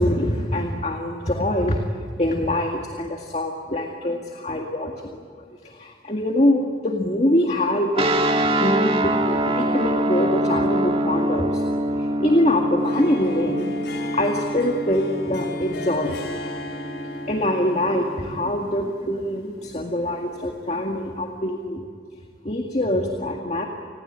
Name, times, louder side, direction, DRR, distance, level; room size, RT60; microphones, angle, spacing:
voice 1, 0.0-1.8 2.2-5.1 5.6-8.1 8.3-11.6 12.2-13.7 14.1-16.3 17.3-21.8 22.4-23.7, left 1 dB, 35° left, 2 dB, 2.0 m, -24 dB
sound 1, 8.0-18.3, right 1 dB, 30° right, 1.7 m, -25 dB
Harp, 12.8-21.1, left 2 dB, 70° left, 3.4 m, -38 dB
30.0 x 20.5 x 8.9 m, 2.2 s
head